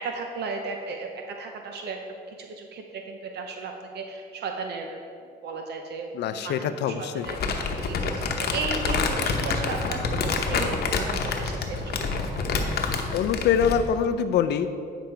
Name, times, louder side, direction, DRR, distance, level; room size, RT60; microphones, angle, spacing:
voice 1, 0.0-2.0 2.3-5.0 5.4-12.0, right 4 dB, 75° right, 3 dB, 0.7 m, -35 dB
voice 2, 6.1-7.3 13.1-14.7, left 8 dB, 80° left, 11 dB, 0.5 m, -24 dB
Crumpling crinkling, 7.2-13.9, left 4 dB, 65° left, 0.9 m, -27 dB
9.1 x 5.0 x 4.5 m, 2.4 s
cardioid pair, 95°, 17 cm